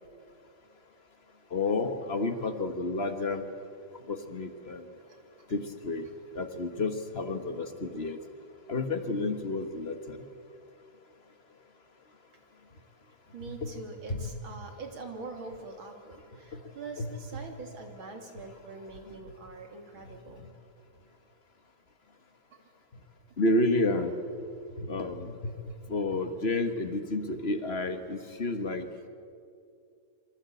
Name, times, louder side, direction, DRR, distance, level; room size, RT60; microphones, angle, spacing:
voice 1, 1.5-3.4 4.1-4.9 5.5-6.1 6.3-8.2 8.7-10.2 13.5-13.7 14.1-14.3 16.5-16.6 17.0-17.4 19.0-19.2 23.4-24.1 24.8-28.9, left 2 dB, 35° left, 8 dB, 1.6 m, -31 dB
voice 2, 13.3-20.4 22.5-22.6, right 3 dB, 80° right, 4 dB, 3.7 m, -44 dB
27.0 x 24.5 x 8.5 m, 2.4 s
omnidirectional pair, 2.2 m